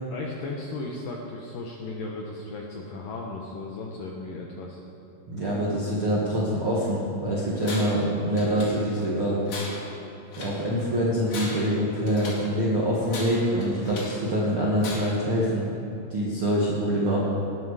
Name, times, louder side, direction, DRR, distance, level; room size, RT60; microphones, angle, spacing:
voice 1, 0.1-4.8, left 3 dB, 80° left, -1 dB, 2.0 m, -36 dB
voice 2, 5.3-9.4 10.4-15.6 16.1-17.2, equal, 70° right, -6 dB, 1.2 m, -25 dB
Tools, 7.6-8.1 8.4-9.1 9.5-10.6 11.2-12.5 13.1-14.2 14.8-15.3, left 2 dB, 45° left, 2.6 m, -38 dB
18.0 x 11.0 x 4.9 m, 2.8 s
omnidirectional pair, 5.4 m